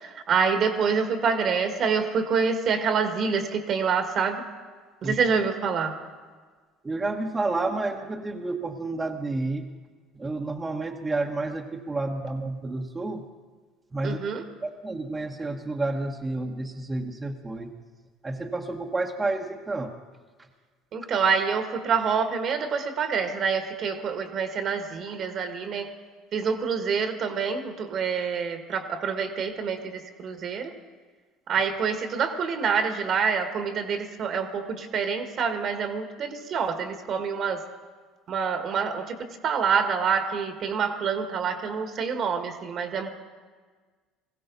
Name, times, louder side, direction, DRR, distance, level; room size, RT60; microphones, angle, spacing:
voice 1, 0.0-4.4 5.0-5.9 14.0-14.4 20.9-25.9 26.3-30.7 31.5-37.6 38.3-39.2 39.4-43.1, right 6 dB, 50° right, 7 dB, 1.6 m, -26 dB
voice 2, 6.8-9.7 10.1-13.3 13.9-14.2 14.6-17.7 18.2-19.9 20.4-20.5, right 2 dB, 20° right, 1 dB, 1.2 m, -30 dB
20.0 x 16.0 x 4.0 m, 1.5 s
hypercardioid pair, 70°, 0 cm